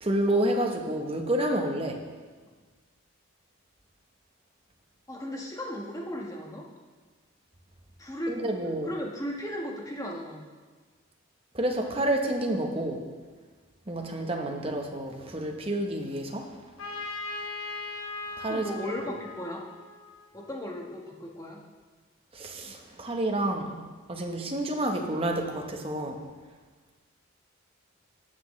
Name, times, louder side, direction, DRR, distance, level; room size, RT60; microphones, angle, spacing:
voice 1, 0.0-2.0 8.3-8.9 11.5-13.0 13.9-16.6 16.9-17.0 18.4-18.7 22.3-23.8 24.1-26.2, right 1 dB, 25° right, 2 dB, 0.9 m, -29 dB
voice 2, 5.1-6.6 8.0-8.4 8.8-10.4 18.5-19.6 20.3-21.6, left 1 dB, 15° left, -1 dB, 1.2 m, -36 dB
Trumpet, 16.8-20.5, left 3 dB, 80° left, 1.3 m, -39 dB
17.0 x 5.9 x 3.2 m, 1.4 s
head